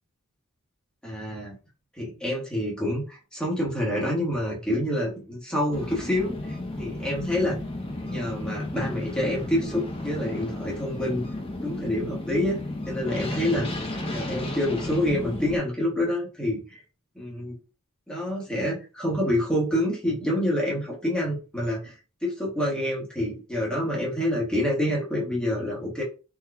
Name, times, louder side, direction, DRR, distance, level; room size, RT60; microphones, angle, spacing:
voice 1, 1.0-1.5 2.0-6.4 6.8-7.6 8.1-11.2 11.6-12.6 12.9-13.7 14.1-16.8 17.1-17.5 18.1-21.9 22.2-26.0, left 1 dB, 5° left, -3 dB, 1.3 m, -27 dB
sound 1, 5.7-15.6, left 1 dB, 25° left, 0.7 m, -33 dB
3.6 x 3.0 x 2.3 m, 0.33 s
head